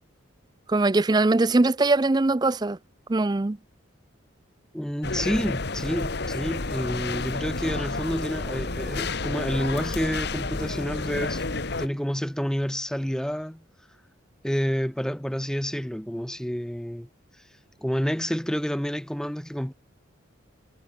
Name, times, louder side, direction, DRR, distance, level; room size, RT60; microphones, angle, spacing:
voice 1, 0.7-2.8 3.1-3.6, right 2 dB, 20° right, 0.4 m, -21 dB
voice 2, 4.7-13.6 14.4-17.1 17.8-19.7, equal, 5° left, 0.8 m, -29 dB
sound 1, 5.0-11.9, left 3 dB, 55° left, 1.4 m, -30 dB
head